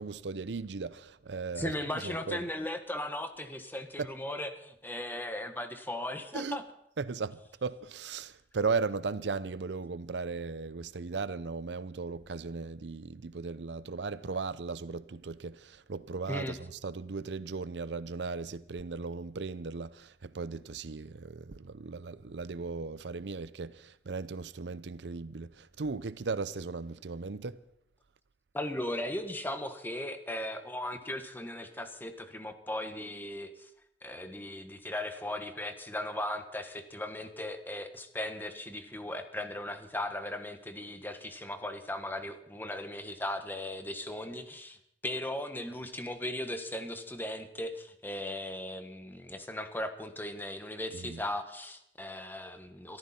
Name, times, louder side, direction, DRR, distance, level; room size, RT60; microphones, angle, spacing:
voice 1, 0.0-1.7 2.0-2.4 4.0-4.1 6.3-6.6 7.0-27.6 50.9-51.2, right 4 dB, 80° right, 0.6 m, -37 dB
voice 2, 1.6-6.6 16.3-16.6 28.5-33.7 34.0-44.8 45.0-53.0, left 1 dB, 10° left, 1.3 m, -37 dB
23.0 x 14.0 x 4.3 m
head